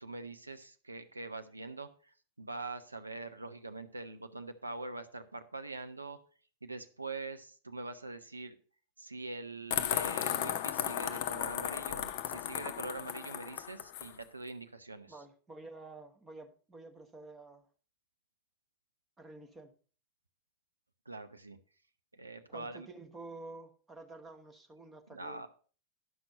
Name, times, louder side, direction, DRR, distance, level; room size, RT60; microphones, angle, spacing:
voice 1, 0.0-6.2 6.6-8.6 9.0-15.1 21.1-21.6 22.1-22.9 25.1-25.5, right 2 dB, 80° right, 9 dB, 0.7 m, -44 dB
sound 1, 9.7-14.1, left 11 dB, 50° left, 0.7 m, -35 dB
voice 2, 15.1-17.7 19.2-19.7 22.5-25.5, right 2 dB, 15° right, 5 dB, 1.3 m, -50 dB
11.0 x 6.0 x 5.2 m, 0.41 s
figure-of-eight pair, 90°, 0 cm